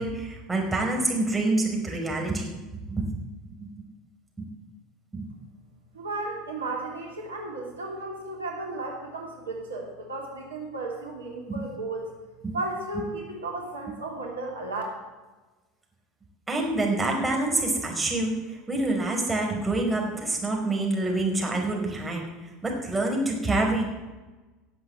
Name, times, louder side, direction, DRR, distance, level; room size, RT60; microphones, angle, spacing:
voice 1, 0.0-3.1 3.6-3.7 4.4-4.5 5.1-5.3 11.5-11.6 12.4-12.5 16.5-18.3 18.7-22.2 22.6-23.9, right 2 dB, 10° right, 0 dB, 5.0 m, -27 dB
voice 2, 5.9-12.1 12.5-14.8, right 2 dB, 85° right, -1 dB, 3.1 m, -34 dB
17.0 x 7.9 x 7.9 m, 1.2 s
figure-of-eight pair, 75°, 0 cm